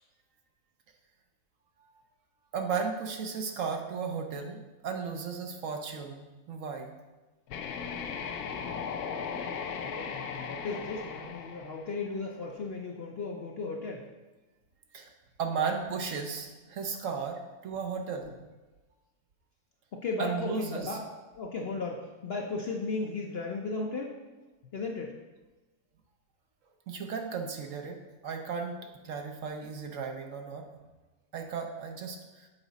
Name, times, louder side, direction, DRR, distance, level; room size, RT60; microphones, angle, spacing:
voice 1, 2.5-6.9 14.9-15.1 15.4-18.3 20.2-21.0 26.9-28.8 29.0-30.7 31.3-32.5, right 5 dB, 65° right, 4 dB, 1.0 m, -35 dB
sound 1, 7.5-12.4, left 6 dB, 80° left, 1.1 m, -37 dB
voice 2, 9.7-14.1 18.3-18.4 19.9-21.0 21.3-24.2 24.7-25.1, left 3 dB, 55° left, 1 dB, 0.7 m, -35 dB
7.2 x 4.9 x 4.0 m, 1.2 s
omnidirectional pair, 1.6 m